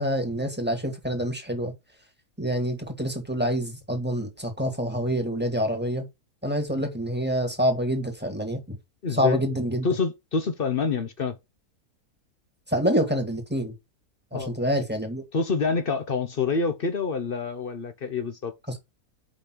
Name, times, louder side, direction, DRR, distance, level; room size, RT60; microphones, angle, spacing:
voice 1, 0.0-1.7 2.4-6.0 6.4-8.8 9.1-9.9 12.7-13.7 14.3-15.2, equal, 5° right, 1.6 m, -26 dB
voice 2, 9.0-9.4 9.8-11.4 14.3-14.6 15.3-18.5, left 4 dB, 50° left, 0.7 m, -27 dB
5.1 x 5.1 x 6.1 m
omnidirectional pair, 1.6 m